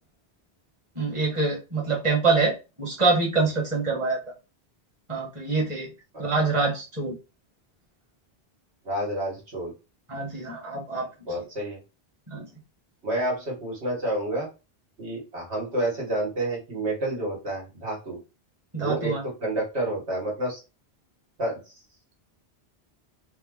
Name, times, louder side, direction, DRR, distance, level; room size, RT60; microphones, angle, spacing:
voice 1, 0.9-4.2 5.1-5.9 6.2-7.1 10.1-11.1 12.3-12.4 18.7-19.2, right 4 dB, 30° right, -3 dB, 1.4 m, -25 dB
voice 2, 8.9-9.7 11.3-11.8 13.0-14.5 15.0-18.2 18.8-19.1 19.4-20.6 21.4-21.6, right 1 dB, 85° right, -2 dB, 1.8 m, -29 dB
4.1 x 2.3 x 3.7 m, 0.29 s
omnidirectional pair, 1.1 m